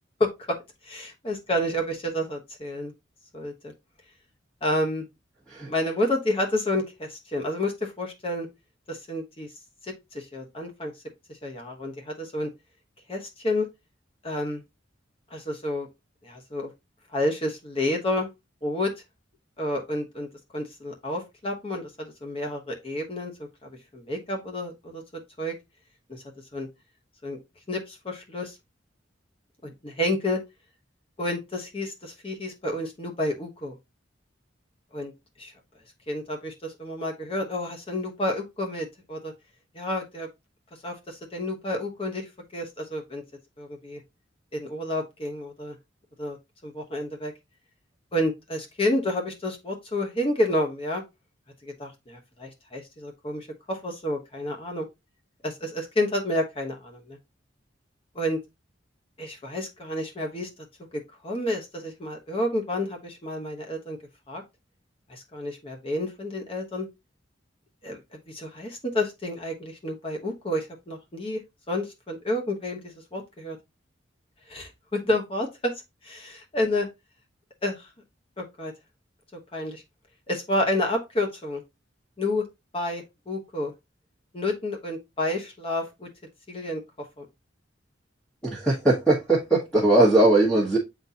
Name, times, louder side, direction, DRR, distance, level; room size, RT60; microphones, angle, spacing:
voice 1, 0.2-0.6 0.8-2.9 3.3-3.7 4.6-5.0 5.6-8.5 8.9-9.5 9.8-10.9 11.4-12.5 13.1-13.7 14.2-14.6 15.3-15.9 16.2-16.7 17.1-18.3 18.6-18.9 19.6-20.3 20.5-25.0 25.4-25.5 26.1-26.2 26.5-26.7 27.2-27.4 27.7-28.6 29.6-30.4 31.2-33.8 34.9-35.1 35.4-35.5 36.1-39.3 39.7-40.3 40.8-43.2 43.6-44.0 44.5-45.7 46.2-46.4 46.6-47.3 48.1-51.0 51.6-54.9 55.4-57.2 58.1-58.4 59.2-60.5 60.9-64.0 64.3-64.4 65.1-66.9 67.8-68.0 68.3-71.4 71.7-73.6 74.5-75.7 76.0-76.9 77.6-77.9 78.4-78.7 79.5-79.8 80.3-81.6 82.2-82.4 82.7-83.7 84.3-86.1 86.5-86.8 87.2-87.3, left 1 dB, 30° left, 1.1 m, -30 dB
voice 2, 88.4-90.8, right 2 dB, 5° left, 1.5 m, -20 dB
8.7 x 4.0 x 2.8 m
head